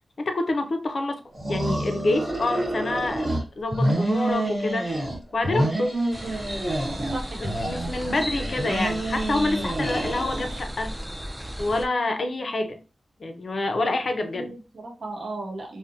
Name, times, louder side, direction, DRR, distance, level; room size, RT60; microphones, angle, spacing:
voice 1, 0.2-1.2 1.5-3.3 3.6-4.9 5.3-6.0 7.6-11.0 11.6-12.8 13.2-14.5, left 2 dB, 55° left, 0.4 m, -27 dB
sound 1, 1.3-3.4 3.7-5.2 5.4-7.2 7.4-10.6, right 1 dB, 25° right, 1.2 m, -28 dB
sound 2, 6.1-11.9, equal, 10° right, 0.4 m, -35 dB
voice 2, 7.1-7.5 14.2-15.8, right 2 dB, 65° right, 0.8 m, -36 dB
2.5 x 2.0 x 2.6 m
wide cardioid pair, 95°, 0 cm